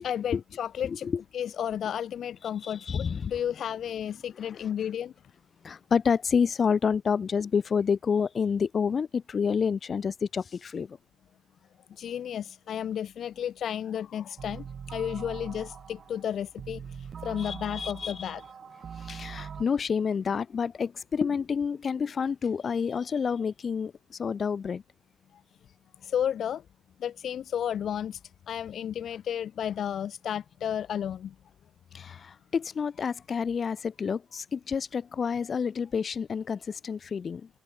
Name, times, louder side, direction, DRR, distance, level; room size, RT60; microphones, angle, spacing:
voice 1, 0.0-1.1 1.3-5.1 11.9-18.4 26.0-26.6 27.0-28.2 28.5-31.3, left 9 dB, 65° left, 2.5 m, -32 dB
voice 2, 0.8-1.2 2.6-3.3 5.6-11.0 17.4-18.3 19.0-24.8 31.9-37.5, left 6 dB, 45° left, 3.8 m, -29 dB
sound 1, 14.4-19.6, right 7 dB, 50° right, 3.4 m, -42 dB
cardioid pair, 90°, 0 cm